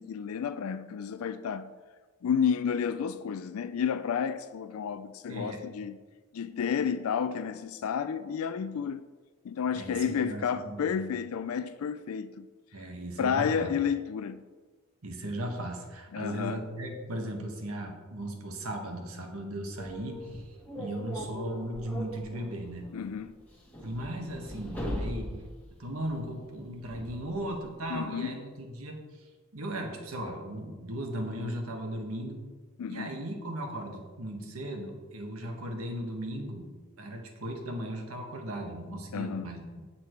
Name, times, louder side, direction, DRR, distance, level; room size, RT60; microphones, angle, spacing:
voice 1, 0.0-1.7 2.2-6.0 6.3-9.0 9.4-12.5 12.8-12.9 13.2-14.4 16.1-16.6 22.9-23.3 27.9-28.4 32.8-33.1 39.1-39.5, left 7 dB, 85° left, 0.4 m, -31 dB
voice 2, 5.3-5.6 9.7-10.9 12.7-13.7 15.0-22.8 23.8-25.3 25.8-32.4 32.9-36.7 37.0-39.8, right 1 dB, 90° right, 1.5 m, -37 dB
sound 1, 19.8-28.0, equal, 10° left, 1.2 m, -40 dB
8.5 x 7.4 x 4.5 m
head